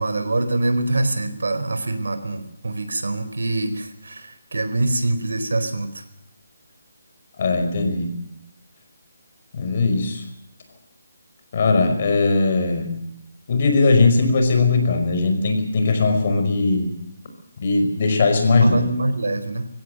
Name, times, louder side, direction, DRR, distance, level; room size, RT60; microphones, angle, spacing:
voice 1, 0.0-6.0 18.6-19.7, right 2 dB, 90° right, 10 dB, 4.2 m, -24 dB
voice 2, 7.4-8.2 9.5-10.2 11.5-13.0 13.5-16.9 17.6-18.8, left 3 dB, 35° left, 5 dB, 5.3 m, -19 dB
22.5 x 17.0 x 7.9 m, 0.76 s
hypercardioid pair, 175°, 0 cm